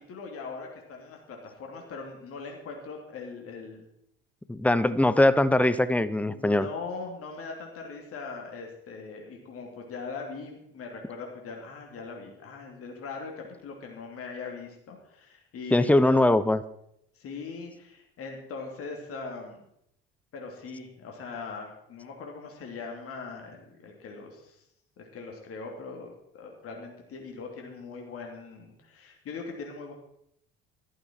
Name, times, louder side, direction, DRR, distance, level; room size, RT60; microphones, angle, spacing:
voice 1, 0.1-3.9 6.3-16.1 17.1-19.6 20.3-24.6 25.0-29.9, left 4 dB, 50° left, 1 dB, 3.0 m, -40 dB
voice 2, 4.5-6.7 15.7-16.6, left 1 dB, 5° left, 15 dB, 0.9 m, -21 dB
14.0 x 12.0 x 4.6 m, 0.75 s
hypercardioid pair, 60°, 29 cm